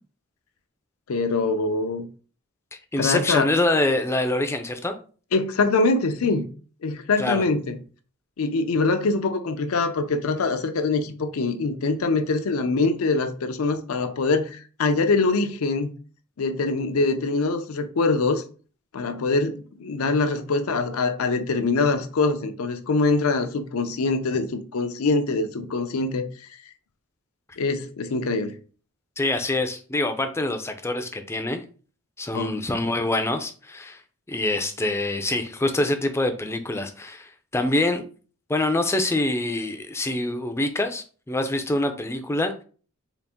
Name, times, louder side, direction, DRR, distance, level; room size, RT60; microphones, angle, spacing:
voice 1, 1.1-2.1 3.0-3.5 5.3-6.5 6.8-7.8 8.4-15.9 16.4-18.4 18.9-26.5 27.6-28.5 32.3-32.6, left 3 dB, 75° left, 0.5 m, -24 dB
voice 2, 2.9-5.0 7.2-7.4 29.2-31.6 32.2-34.0 34.3-38.0 38.5-42.6, left 2 dB, 10° left, 0.4 m, -25 dB
3.9 x 2.4 x 3.5 m
head